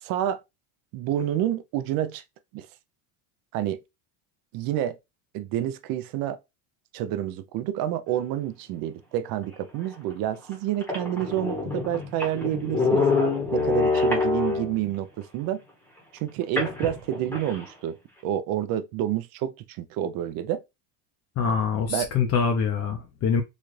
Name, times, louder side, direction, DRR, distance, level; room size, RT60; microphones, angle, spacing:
voice 1, 0.0-0.4 0.9-2.2 2.5-2.7 3.5-3.8 4.5-5.0 5.3-6.4 6.9-13.0 13.5-15.6 16.1-18.0 18.2-20.6 21.9-22.1, right 12 dB, 50° right, 0.5 m, -28 dB
sound 1, 9.9-10.0 10.5-10.6 10.8-14.9 16.6-17.6, left 4 dB, 5° left, 0.9 m, -26 dB
voice 2, 21.4-23.4, left 6 dB, 35° left, 0.6 m, -24 dB
4.1 x 2.3 x 3.1 m
cardioid pair, 145°, 45 cm